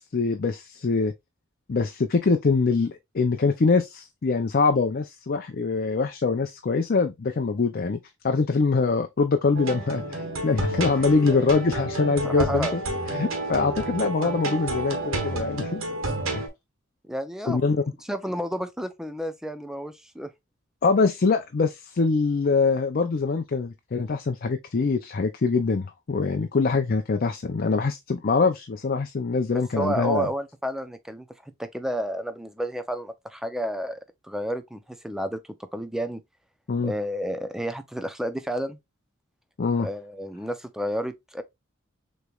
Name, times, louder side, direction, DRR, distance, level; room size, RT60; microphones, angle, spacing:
voice 1, 0.1-1.1 1.7-8.0 8.2-12.8 13.1-15.8 16.3-16.4 17.5-17.8 20.8-30.3 36.7-36.9 39.6-39.9, left 4 dB, 45° left, 0.5 m, -24 dB
sound 1, 9.5-16.5, right 2 dB, 85° right, 1.5 m, -30 dB
voice 2, 12.2-12.7 17.1-17.6 18.1-20.3 29.5-36.2 36.8-38.8 39.8-41.4, equal, ahead, 0.5 m, -31 dB
6.5 x 3.1 x 2.3 m
head